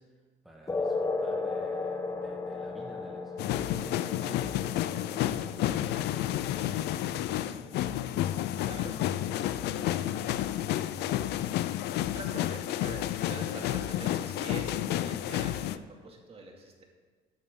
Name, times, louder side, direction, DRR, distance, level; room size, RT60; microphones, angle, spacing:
voice 1, 0.0-7.8 8.9-11.0, equal, ahead, -2 dB, 1.5 m, -51 dB
sound 1, 0.7-7.7, left 3 dB, 20° left, 1.0 m, -35 dB
sound 2, 3.4-15.8, left 12 dB, 75° left, 0.5 m, -31 dB
voice 2, 8.6-9.0 12.0-16.8, right 2 dB, 35° right, 0 dB, 2.4 m, -44 dB
14.5 x 9.7 x 3.8 m, 1.5 s
cardioid pair, 110°, 17 cm